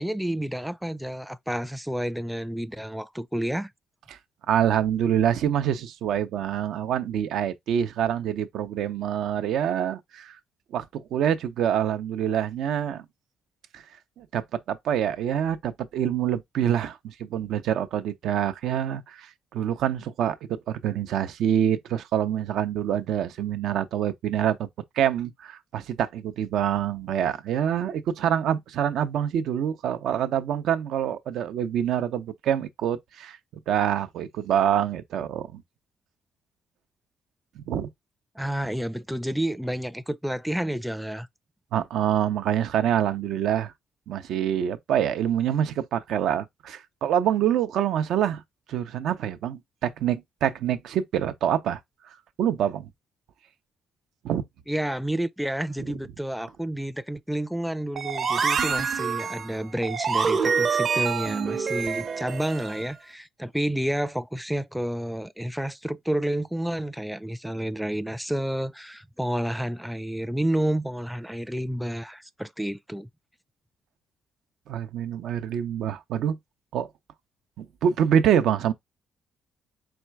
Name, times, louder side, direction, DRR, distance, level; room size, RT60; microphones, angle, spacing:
voice 1, 0.0-3.7 38.4-41.3 54.7-73.1, right 1 dB, ahead, 0.4 m, -30 dB
voice 2, 4.5-10.4 10.7-13.0 13.7-13.8 14.2-14.4 14.7-24.7 25.0-33.4 33.7-35.6 37.6-37.9 41.7-43.7 44.1-48.4 48.7-51.8 52.4-52.9 54.2-54.4 74.7-76.3 76.7-76.9 77.6-78.7, right 9 dB, 80° right, 0.6 m, -26 dB
sound 1, 57.9-62.9, right 6 dB, 45° right, 0.7 m, -26 dB
4.3 x 2.3 x 4.6 m
cardioid pair, 90°, 0 cm